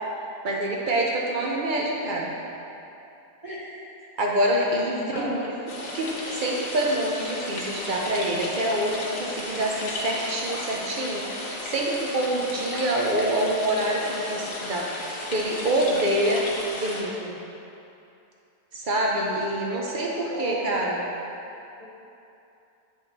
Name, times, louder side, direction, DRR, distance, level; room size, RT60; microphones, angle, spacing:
voice 1, 0.4-2.3 4.2-16.4 16.7-17.4 18.7-21.0, right 1 dB, 60° right, -2 dB, 0.5 m, -26 dB
voice 2, 5.1-5.5 19.7-20.7 21.8-21.9, equal, 25° right, -9 dB, 1.0 m, -35 dB
sound 1, 5.7-17.0, left 2 dB, 75° left, 1.6 m, -34 dB
8.5 x 4.3 x 4.0 m, 2.7 s
omnidirectional pair, 1.8 m